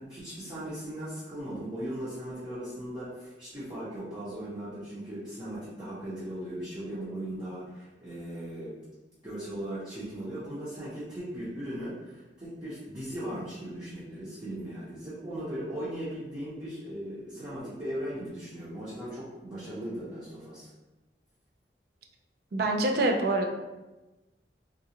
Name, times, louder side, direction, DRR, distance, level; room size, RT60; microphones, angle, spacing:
voice 1, 0.0-8.7 9.2-20.7, right 1 dB, 25° right, -12 dB, 0.9 m, -38 dB
voice 2, 22.5-23.5, right 2 dB, 60° right, 2 dB, 0.4 m, -25 dB
3.7 x 2.3 x 2.8 m, 1.1 s
head